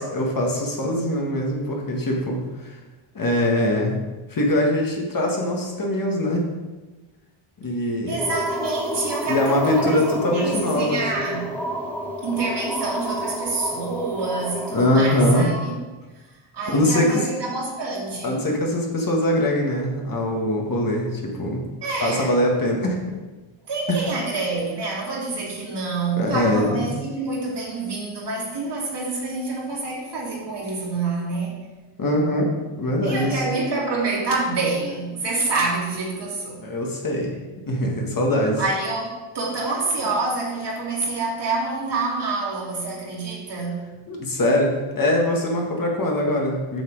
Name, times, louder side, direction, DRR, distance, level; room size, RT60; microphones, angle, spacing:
voice 1, 0.0-2.8 3.1-4.0 4.3-6.4 7.6-8.2 9.3-11.1 14.7-15.5 16.7-17.3 18.2-21.6 22.0-23.0 23.9-24.0 26.2-26.8 32.0-32.5 32.8-33.4 36.6-37.3 37.7-38.6 44.1-46.8, left 1 dB, 40° left, 0 dB, 1.8 m, -22 dB
voice 2, 8.1-10.0 10.3-11.5 12.2-15.7 16.5-18.4 21.8-22.3 23.7-31.6 33.0-36.6 38.6-43.8, right 3 dB, 55° right, -4 dB, 2.8 m, -27 dB
sound 1, 8.2-15.4, equal, 5° left, 1.7 m, -30 dB
7.0 x 6.0 x 4.8 m, 1.2 s
cardioid pair, 95°, 49 cm